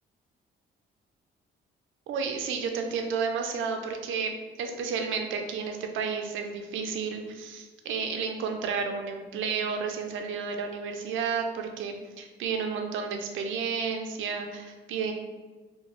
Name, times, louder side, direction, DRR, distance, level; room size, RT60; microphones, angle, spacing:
voice 1, 2.1-15.1, right 5 dB, 80° right, 5 dB, 0.4 m, -32 dB
2.9 x 2.1 x 2.9 m, 1.3 s
cardioid pair, 90°, 20 cm